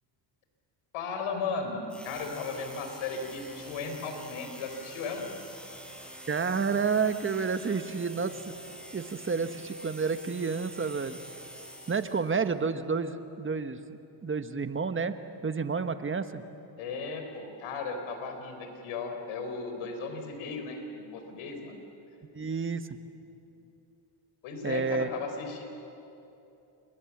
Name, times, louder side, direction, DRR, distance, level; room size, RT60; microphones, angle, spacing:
voice 1, 0.9-5.3 16.8-21.8 24.4-25.6, left 4 dB, 80° left, 5 dB, 4.5 m, -36 dB
sound 1, 1.9-12.5, equal, ahead, 5.5 m, -46 dB
voice 2, 6.3-8.5 8.9-11.2 11.9-13.8 14.2-15.1 15.4-16.4 22.3-22.9 24.6-25.1, right 5 dB, 25° right, 9 dB, 1.4 m, -30 dB
28.5 x 22.5 x 7.4 m, 2.9 s
cardioid pair, 85°, 48 cm